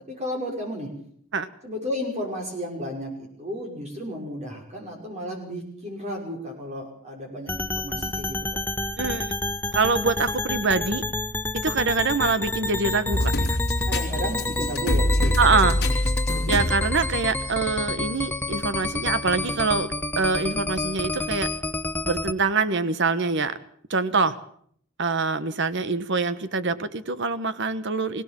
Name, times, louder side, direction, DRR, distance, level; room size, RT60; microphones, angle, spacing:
voice 1, 0.1-0.9 1.6-8.6 13.9-15.7, equal, 35° right, 0 dB, 5.7 m, -33 dB
sound 1, 7.5-22.3, left 2 dB, 10° left, 0.9 m, -29 dB
voice 2, 9.0-9.3 9.7-11.0 11.5-13.6 15.4-15.8 16.5-21.5 22.0-23.6 23.9-24.4 25.0-28.2, right 4 dB, 60° right, 13 dB, 1.2 m, -24 dB
sound 2, 13.1-17.8 18.3-18.4 19.3-19.4, left 1 dB, 55° left, 3.0 m, -25 dB
21.5 x 17.5 x 7.5 m, 0.63 s
head